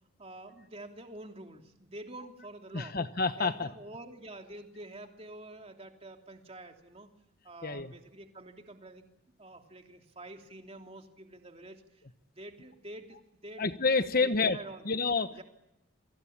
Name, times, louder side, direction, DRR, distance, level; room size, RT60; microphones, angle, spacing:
voice 1, 0.2-3.0 3.4-7.1 7.4-9.0 9.4-14.8 15.3-15.4, right 1 dB, 30° right, 4 dB, 3.1 m, -47 dB
voice 2, 2.7-3.7 7.6-7.9 13.6-14.6 14.8-15.4, left 4 dB, 45° left, 10 dB, 1.1 m, -28 dB
29.5 x 23.5 x 8.6 m, 0.88 s
head